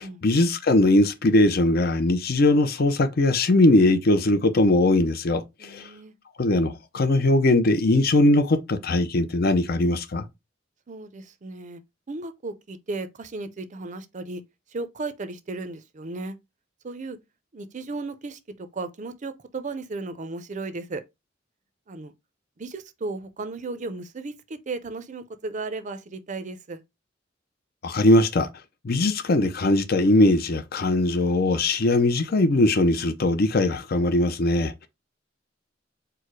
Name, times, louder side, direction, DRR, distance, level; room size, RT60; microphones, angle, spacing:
voice 1, 0.0-5.9 6.4-10.3 27.8-28.5 28.8-34.9, left 2 dB, 55° left, 0.6 m, -20 dB
voice 2, 5.6-6.1 10.9-11.8 12.1-14.4 14.7-16.4 16.8-17.2 17.5-21.0 21.9-22.1 22.6-26.8, right 3 dB, 40° right, 0.5 m, -35 dB
4.6 x 2.1 x 4.6 m
head